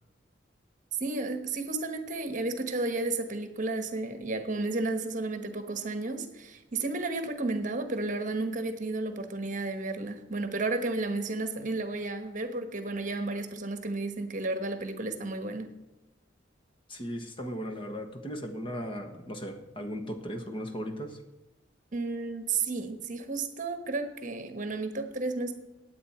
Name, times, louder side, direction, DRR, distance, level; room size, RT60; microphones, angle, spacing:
voice 1, 1.0-15.7 21.9-25.5, right 3 dB, 45° right, 7 dB, 1.2 m, -32 dB
voice 2, 16.9-21.2, equal, 30° left, 5 dB, 1.2 m, -37 dB
15.5 x 9.3 x 4.4 m, 1.0 s
head